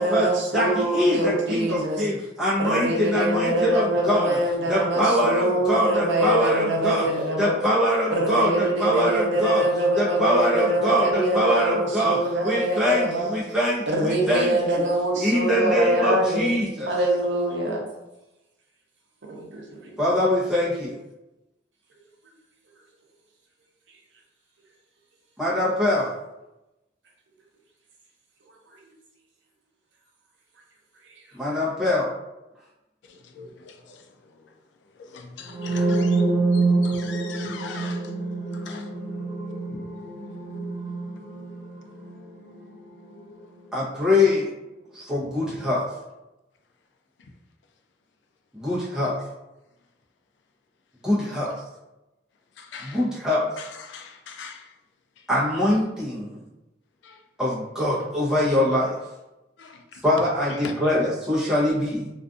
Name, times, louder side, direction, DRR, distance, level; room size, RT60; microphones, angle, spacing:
voice 1, 0.0-2.1 2.6-7.6 8.1-13.3 13.9-16.5 16.9-17.9 19.3-19.9, right 1 dB, 80° right, 0.6 m, -24 dB
voice 2, 0.5-4.4 4.7-7.1 7.4-9.6 10.0-12.2 12.4-14.8 15.2-16.9 20.0-21.0 25.4-26.1 31.3-32.1 43.7-44.5 44.9-45.8 48.5-49.2 51.0-51.5 52.9-53.5 55.3-56.4 57.4-58.9 60.0-62.1, left 1 dB, 5° right, 0.8 m, -23 dB
voice 3, 33.0-34.5 34.8-38.1 38.5-38.9 39.7-39.9 45.5-45.6 47.2-47.3 51.5-51.6 52.6-53.1 53.6-54.8 55.2-55.3 57.0-57.2 59.6-60.0 60.5-60.9, left 5 dB, 75° left, 0.3 m, -42 dB
sound 1, 35.5-43.3, right 3 dB, 45° right, 1.3 m, -26 dB
2.5 x 2.4 x 2.3 m
head